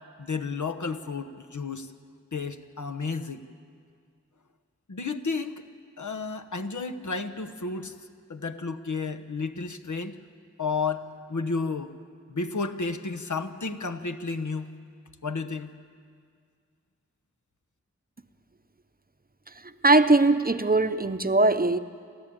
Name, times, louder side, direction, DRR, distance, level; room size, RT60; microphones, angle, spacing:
voice 1, 0.2-1.9 2.3-3.4 4.9-5.6 6.0-8.0 8.3-10.2 10.6-11.9 12.3-14.7 15.2-15.7, left 4 dB, 75° left, 9 dB, 1.1 m, -32 dB
voice 2, 19.8-21.8, right 2 dB, 30° right, 11 dB, 0.7 m, -20 dB
28.5 x 13.0 x 8.7 m, 2.2 s
wide cardioid pair, 55°, 30 cm